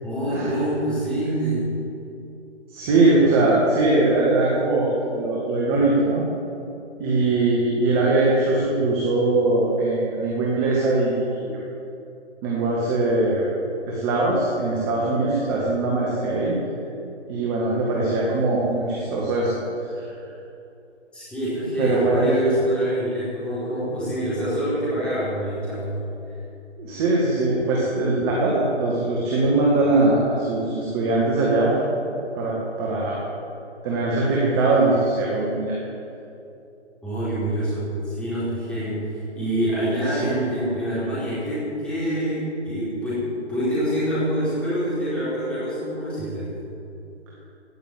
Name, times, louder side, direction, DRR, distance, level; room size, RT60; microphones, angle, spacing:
voice 1, 0.0-1.7 21.1-25.9 37.0-39.0 39.4-46.5, right 1 dB, 5° left, -12 dB, 4.2 m, -25 dB
voice 2, 2.7-6.2 7.0-11.6 12.4-13.5 13.9-16.6 17.3-19.5 19.8-20.1 21.8-22.3 26.8-31.8 32.3-33.2 33.8-35.8 40.1-40.4, right 2 dB, 20° right, -4 dB, 2.0 m, -21 dB
17.0 x 6.8 x 9.2 m, 2.7 s
figure-of-eight pair, 145°, 35 cm